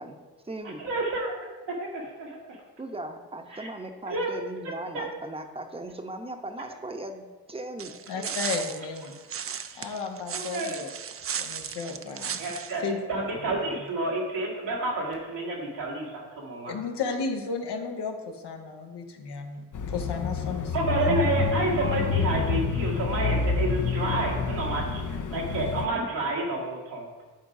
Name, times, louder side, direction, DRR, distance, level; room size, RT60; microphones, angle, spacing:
voice 1, 0.0-0.8 2.8-7.9, right 2 dB, 15° right, 5 dB, 0.9 m, -38 dB
voice 2, 0.8-1.3 1.7-2.6 3.5-3.7 4.1-4.3 4.6-5.1 8.2-8.3 9.7-9.9 10.3-10.8 12.4-16.8 20.7-27.3, right 2 dB, 85° right, -3 dB, 1.9 m, -30 dB
sound 1, 7.8-12.7, right 7 dB, 35° right, 0.5 m, -35 dB
voice 3, 8.1-9.1 9.7-10.9 11.3-12.4 12.8-13.0 13.3-13.5 16.7-20.7 21.0-21.3, left 5 dB, 70° left, 3 dB, 1.1 m, -34 dB
Bicycle / Mechanisms, 19.7-25.9, left 5 dB, 45° left, 0.7 m, -28 dB
9.5 x 3.8 x 4.9 m, 1.3 s
supercardioid pair, 45°, 41 cm